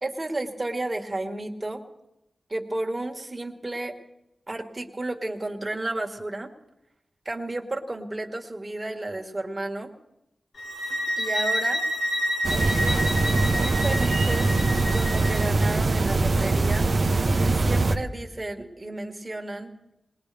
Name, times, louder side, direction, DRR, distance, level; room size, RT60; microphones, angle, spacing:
voice 1, 0.0-1.8 2.5-4.0 4.5-6.5 7.3-9.9 11.2-11.8 12.5-14.6 14.9-16.9 17.4-19.8, right 2 dB, 30° right, 3 dB, 1.9 m, -32 dB
sound 1, 10.6-15.5, equal, 75° left, 1.7 m, -28 dB
sound 2, 12.4-18.0, right 3 dB, 55° right, 0.9 m, -22 dB
20.5 x 20.5 x 3.5 m, 0.89 s
wide cardioid pair, 75°, 0 cm